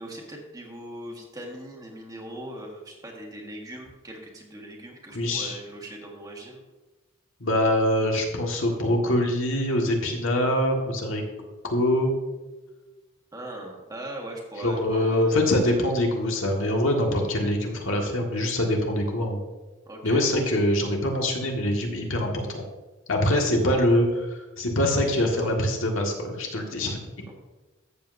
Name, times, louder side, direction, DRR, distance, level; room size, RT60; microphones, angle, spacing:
voice 1, 0.0-6.6 13.3-15.4 19.9-20.3 27.3-27.4, right 1 dB, 20° right, 0 dB, 1.5 m, -40 dB
voice 2, 5.1-5.6 7.4-11.2 11.6-12.1 14.6-19.4 20.0-22.6 23.1-27.3, left 1 dB, 70° left, 1 dB, 1.6 m, -24 dB
13.5 x 7.6 x 2.6 m, 1.2 s
head